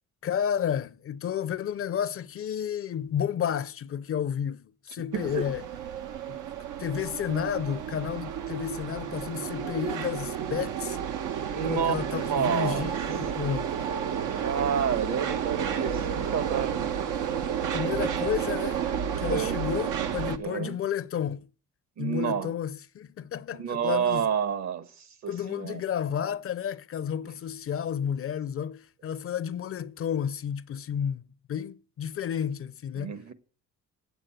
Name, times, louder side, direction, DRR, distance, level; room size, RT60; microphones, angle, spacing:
voice 1, 0.2-5.6 6.3-6.4 6.8-11.0 11.7-13.8 17.7-18.8 19.2-21.5 22.0-24.3 25.3-31.2 31.5-33.1, left 9 dB, 45° left, 0.6 m, -31 dB
voice 2, 5.1-5.5 11.5-11.9 12.3-12.9 14.1-16.8 19.3-19.6 20.4-20.8 22.0-22.5 23.6-25.8 32.9-33.3, right 7 dB, 65° right, 1.3 m, -29 dB
sound 1, 5.1-20.4, right 8 dB, 90° right, 1.0 m, -31 dB
8.7 x 8.0 x 8.9 m
cardioid pair, 90°, 30 cm